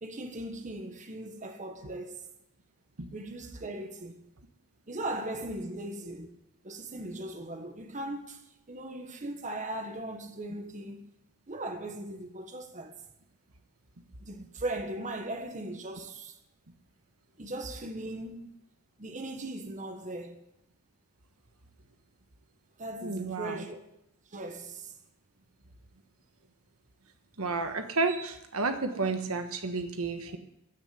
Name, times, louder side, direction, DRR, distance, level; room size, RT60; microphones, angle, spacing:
voice 1, 0.0-2.2 3.1-4.2 4.9-6.4 6.6-8.4 8.7-11.1 11.5-13.0 14.2-16.4 17.4-18.5 19.0-20.4 22.8-23.8 24.3-24.9, right 1 dB, 35° right, 1.5 m, -38 dB
voice 2, 23.0-23.6 27.4-30.4, right 3 dB, 80° right, 1.3 m, -31 dB
15.0 x 6.5 x 9.6 m
head